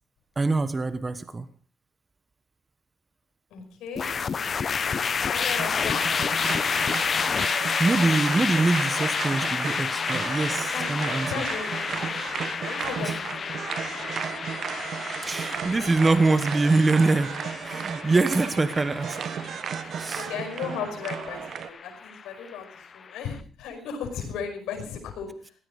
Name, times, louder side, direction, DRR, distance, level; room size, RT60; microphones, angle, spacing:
voice 1, 0.4-1.5 7.4-11.4 13.0-13.1 15.2-17.3 17.6-19.2 20.0-20.3, right 3 dB, 25° right, 12 dB, 1.2 m, -24 dB
voice 2, 3.5-4.1 4.8-4.9 5.3-6.1 10.7-13.9 19.6-25.5, left 7 dB, 85° left, 2 dB, 5.2 m, -36 dB
sound 1, 4.0-23.2, left 6 dB, 45° left, 0.7 m, -30 dB
sound 2, 5.6-21.7, right 7 dB, 60° right, 1.2 m, -34 dB
17.0 x 12.5 x 5.1 m, 0.42 s
cardioid pair, 90°, 0 cm